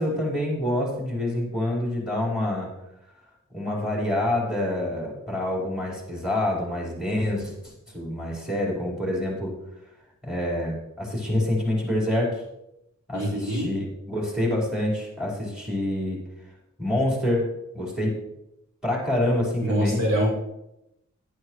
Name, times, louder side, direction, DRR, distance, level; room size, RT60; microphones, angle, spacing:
voice 1, 0.0-2.7 3.5-9.5 10.2-12.4 13.1-16.2 16.8-17.5 17.7-18.2 18.8-20.0, left 1 dB, ahead, -4 dB, 4.8 m, -27 dB
voice 2, 13.1-13.7 19.6-20.3, equal, 60° right, -5 dB, 4.6 m, -24 dB
11.5 x 10.0 x 3.2 m, 0.86 s
wide cardioid pair, 55°, 30 cm